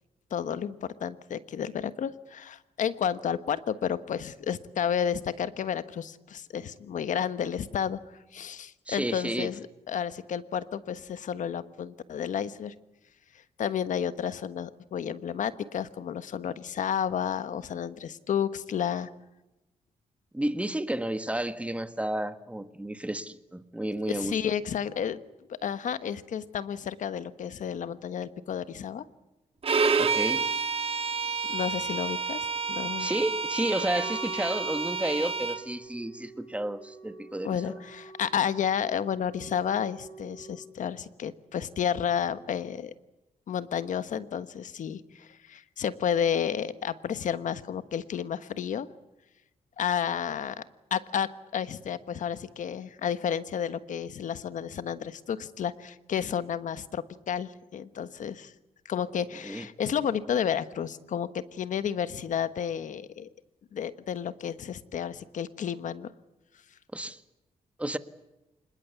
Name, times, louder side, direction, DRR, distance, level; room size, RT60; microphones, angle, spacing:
voice 1, 0.3-8.0 8.3-12.7 13.6-19.1 24.1-25.2 25.5-29.0 31.4-33.1 37.4-42.9 43.5-48.9 49.8-50.5 50.9-58.5 58.8-63.3 63.7-66.1, left 8 dB, 70° left, 1.3 m, -31 dB
voice 2, 8.9-9.5 20.3-24.4 30.0-30.5 33.0-37.7 59.4-59.7 66.9-67.2 67.8-68.0, right 1 dB, 10° right, 1.6 m, -31 dB
Bowed string instrument, 29.6-35.6, right 5 dB, 45° right, 2.4 m, -29 dB
Wind instrument woodwind instrument, 33.5-40.6, right 2 dB, 25° left, 7.2 m, -46 dB
26.0 x 21.0 x 8.4 m
cardioid pair, 85°, 13 cm